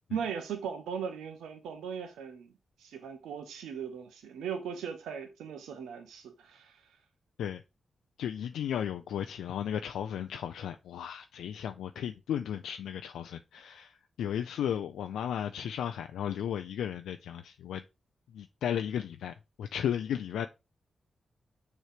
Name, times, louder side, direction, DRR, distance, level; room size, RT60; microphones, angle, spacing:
voice 1, 0.1-2.5 2.8-7.0, right 7 dB, 85° right, 0.7 m, -38 dB
voice 2, 8.2-17.8 18.3-20.5, left 9 dB, 85° left, 0.3 m, -35 dB
6.5 x 3.1 x 4.9 m
supercardioid pair, 45°, 0 cm